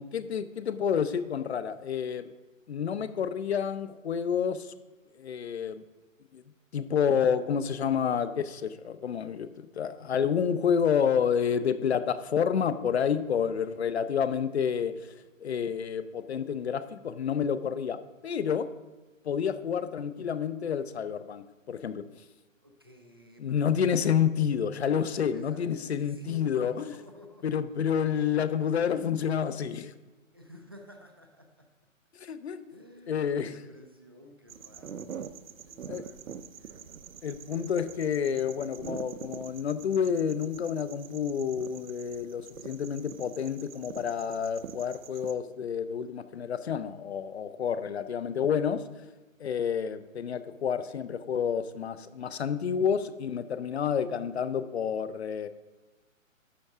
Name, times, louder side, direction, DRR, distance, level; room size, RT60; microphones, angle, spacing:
voice 1, 0.0-2.3 2.7-4.7 5.2-5.8 6.3-6.4 6.7-15.1 15.4-18.7 19.2-22.0 23.4-26.9 27.4-29.9 32.2-32.8 33.1-33.6 35.9-36.0 37.2-48.8 49.4-55.5, left 7 dB, 50° left, 13 dB, 0.7 m, -29 dB
voice 2, 22.6-24.4 25.0-27.6 28.3-28.7 30.3-31.7 32.7-37.9, left 1 dB, 20° right, 3 dB, 0.4 m, -52 dB
sound 1, 34.5-45.3, right 7 dB, 75° right, 0.8 m, -45 dB
11.5 x 7.7 x 3.6 m, 1.2 s
hypercardioid pair, 155°, 40 cm